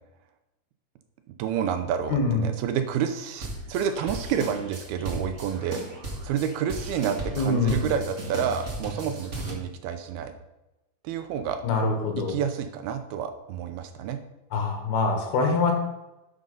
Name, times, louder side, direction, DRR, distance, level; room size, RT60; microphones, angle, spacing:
voice 1, 1.4-5.8 6.2-10.3 11.0-11.6 12.3-14.2, right 8 dB, 80° right, 8 dB, 2.5 m, -29 dB
voice 2, 2.1-2.5 7.4-7.9 11.6-12.4 14.5-15.7, left 3 dB, 70° left, 3 dB, 3.4 m, -24 dB
sound 1, 3.4-9.5, right 1 dB, 60° right, 0.7 m, -36 dB
12.0 x 6.4 x 5.4 m, 0.96 s
omnidirectional pair, 4.7 m